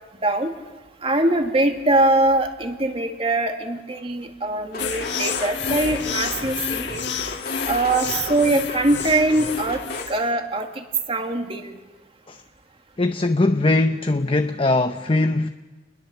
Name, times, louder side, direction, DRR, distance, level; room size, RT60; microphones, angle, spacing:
voice 1, 0.2-0.5 1.0-7.0 7.7-11.8, right 2 dB, 30° right, 2.2 m, -22 dB
sound 1, 4.7-10.0, left 2 dB, 55° left, 2.7 m, -35 dB
sound 2, 4.8-10.3, left 6 dB, 75° left, 1.7 m, -30 dB
voice 2, 13.0-15.5, left 2 dB, 30° left, 0.7 m, -20 dB
30.0 x 21.0 x 7.0 m
head